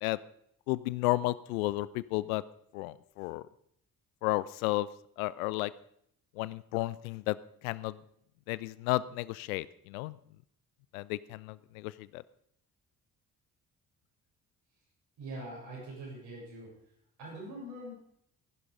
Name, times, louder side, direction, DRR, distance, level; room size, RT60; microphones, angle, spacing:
voice 1, 0.7-2.4 2.7-3.4 4.2-4.9 5.2-5.7 6.4-7.4 7.6-8.0 8.5-10.2 10.9-12.2, left 19 dB, 65° left, 19 dB, 0.6 m, -32 dB
voice 2, 15.2-16.7 17.2-17.9, right 1 dB, 60° right, -3 dB, 7.2 m, -43 dB
15.0 x 11.0 x 5.2 m, 0.70 s
figure-of-eight pair, 40°, 45 cm